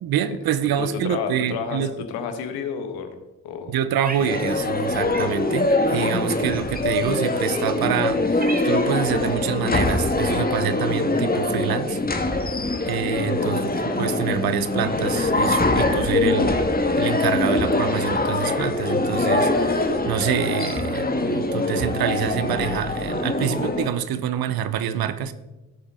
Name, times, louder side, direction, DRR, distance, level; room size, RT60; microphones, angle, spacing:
voice 1, 0.0-1.9 3.7-12.0 12.3-12.4 12.8-13.6 14.0-16.6 17.0-25.3, right 10 dB, 75° right, 13 dB, 0.9 m, -26 dB
voice 2, 0.8-3.1 3.4-3.7 4.2-4.3 13.4-13.7, left 6 dB, 85° left, 7 dB, 1.3 m, -31 dB
Cat, 4.0-4.8 5.1-5.4 6.4-7.0 7.7-7.8 8.1-9.1, right 3 dB, 25° right, 1.6 m, -36 dB
sound 1, 4.3-23.9, left 2 dB, 25° left, 1.7 m, -23 dB
16.0 x 7.3 x 3.8 m, 1.0 s
hypercardioid pair, 45°, 37 cm